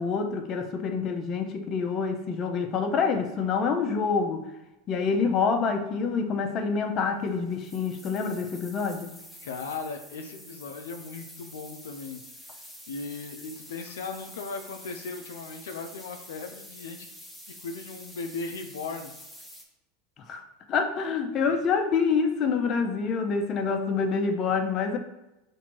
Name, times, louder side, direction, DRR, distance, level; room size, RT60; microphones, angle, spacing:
voice 1, 0.0-4.4 4.9-9.1 20.3-20.4 20.7-25.0, left 5 dB, 40° left, 5 dB, 0.6 m, -27 dB
sound 1, 7.2-19.6, equal, ahead, 0.8 m, -47 dB
voice 2, 9.4-12.2 12.5-12.6 12.9-17.1 17.6-19.1, left 4 dB, 85° left, 5 dB, 0.4 m, -37 dB
5.7 x 2.6 x 2.9 m, 0.96 s
hypercardioid pair, 110°, 0 cm